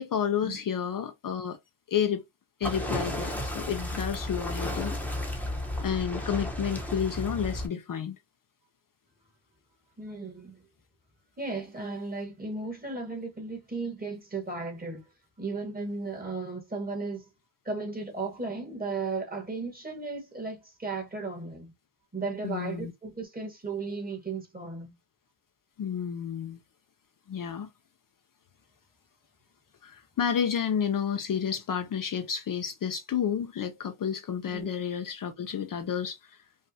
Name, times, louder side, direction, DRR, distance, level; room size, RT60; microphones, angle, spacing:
voice 1, 0.0-1.6 1.9-2.2 2.6-4.9 5.8-8.2 22.4-22.9 25.8-26.6 27.3-27.7 29.8-36.4, left 8 dB, 45° left, 0.6 m, -30 dB
sound 1, 2.6-7.7, left 1 dB, 5° left, 0.9 m, -33 dB
voice 2, 10.0-10.6 11.4-15.0 15.4-17.3 17.6-21.7 22.1-24.9 34.5-34.7, right 3 dB, 20° right, 1.4 m, -35 dB
5.4 x 2.4 x 2.7 m
wide cardioid pair, 150°, 46 cm